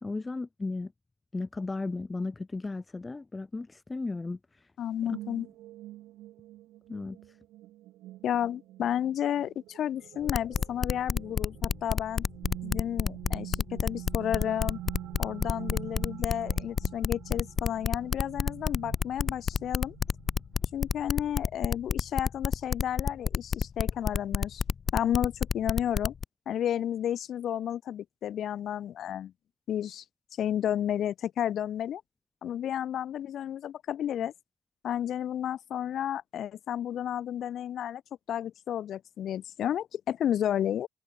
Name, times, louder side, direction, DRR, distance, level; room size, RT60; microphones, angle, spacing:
voice 1, 0.0-0.9 1.3-4.4 6.9-7.2, left 3 dB, 20° left, 2.4 m, -35 dB
voice 2, 4.8-5.5 8.2-12.2 12.6-14.8 15.2-19.9 20.7-24.6 24.9-26.1 26.4-29.3 29.7-30.0 30.3-32.0 32.4-34.3 34.8-38.0 38.3-40.9, left 10 dB, 70° left, 6.7 m, -32 dB
sound 1, 5.1-21.3, right 15 dB, 90° right, 2.8 m, -46 dB
sound 2, 10.3-26.2, left 6 dB, 45° left, 0.7 m, -28 dB
cardioid pair, 90°, 0 cm